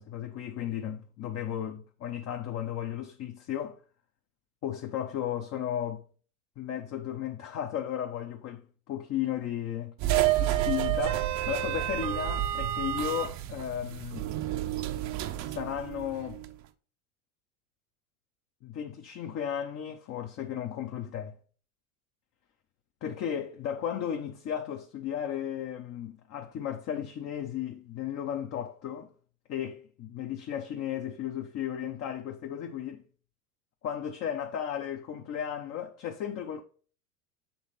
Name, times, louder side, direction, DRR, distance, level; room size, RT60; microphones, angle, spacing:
voice 1, 0.0-3.8 4.6-6.0 6.6-9.9 10.4-14.3 15.4-16.4 18.6-21.3 23.0-29.1 29.5-33.0 33.8-36.6, left 9 dB, 40° left, 0.8 m, -35 dB
sound 1, 10.0-16.5, right 13 dB, 45° right, 0.7 m, -30 dB
7.2 x 3.2 x 5.8 m
hypercardioid pair, 90°, 42 cm